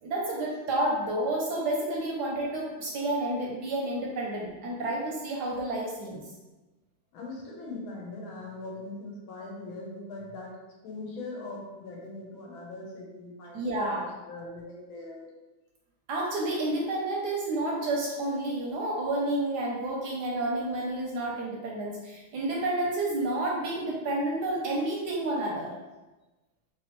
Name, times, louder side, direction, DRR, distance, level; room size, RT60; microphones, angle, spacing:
voice 1, 0.0-6.2 13.5-14.1 16.1-25.7, right 1 dB, 70° right, -2 dB, 1.0 m, -30 dB
voice 2, 7.1-10.6 10.8-15.3, left 2 dB, 85° left, -2 dB, 1.7 m, -41 dB
3.4 x 3.3 x 3.0 m, 1.1 s
omnidirectional pair, 2.2 m